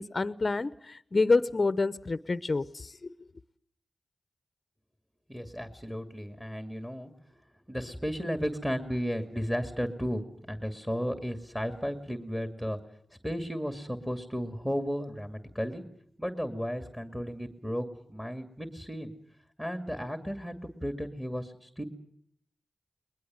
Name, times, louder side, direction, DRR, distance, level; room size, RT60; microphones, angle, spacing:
voice 1, 0.0-3.1, left 3 dB, 45° left, 0.8 m, -28 dB
voice 2, 5.3-7.1 7.7-10.2 10.5-12.8 13.2-15.8 16.2-19.1 19.6-21.8, equal, 5° right, 2.4 m, -34 dB
22.0 x 21.0 x 7.6 m
cardioid pair, 55°, 0 cm